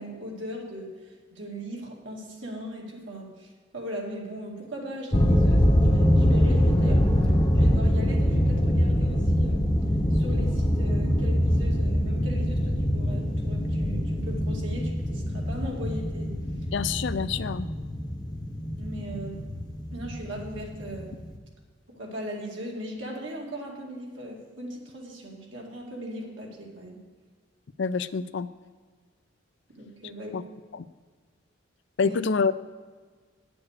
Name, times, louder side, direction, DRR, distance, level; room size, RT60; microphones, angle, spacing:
voice 1, 0.0-7.1 7.5-9.6 10.1-16.3 17.3-17.4 18.7-19.4 19.9-21.2 21.9-27.0 29.8-30.4 32.0-32.2, equal, 75° right, -1 dB, 2.2 m, -38 dB
sound 1, 5.1-21.4, equal, 20° left, 0.8 m, -24 dB
voice 2, 16.7-17.7 27.8-28.5 30.3-30.4 32.0-32.5, left 5 dB, 65° left, 15 dB, 0.4 m, -26 dB
9.5 x 7.0 x 6.5 m, 1.5 s
head